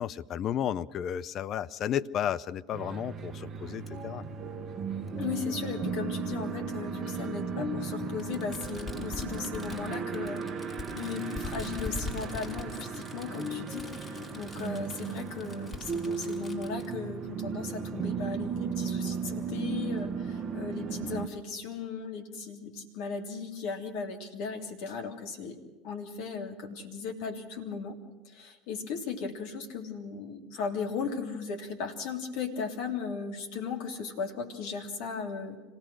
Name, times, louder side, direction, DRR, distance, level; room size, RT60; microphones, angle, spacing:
voice 1, 0.0-4.2, left 9 dB, 45° left, 14 dB, 0.7 m, -33 dB
sound 1, 2.7-21.3, right 5 dB, 35° right, 1.3 m, -35 dB
Fireworks, 3.9-4.0 5.1-5.2 6.4-6.5 8.2-16.9, left 3 dB, 20° left, 5.3 m, -43 dB
voice 2, 5.2-25.6 25.8-28.0 28.2-35.6, left 5 dB, 60° left, 3 dB, 3.2 m, -37 dB
26.0 x 17.5 x 6.3 m, 1.2 s
figure-of-eight pair, 75°, 0 cm